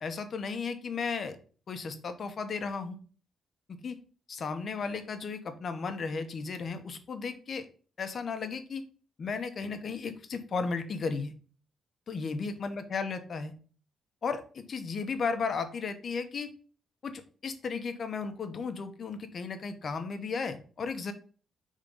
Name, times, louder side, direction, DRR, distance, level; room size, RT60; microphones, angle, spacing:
voice 1, 0.0-1.4 1.7-3.0 3.7-4.0 4.3-7.7 8.0-8.8 9.2-11.3 12.1-13.5 14.2-16.5 17.0-21.1, left 5 dB, 45° left, 8 dB, 0.8 m, -35 dB
5.2 x 3.6 x 5.3 m, 0.40 s
cardioid pair, 135°, 0 cm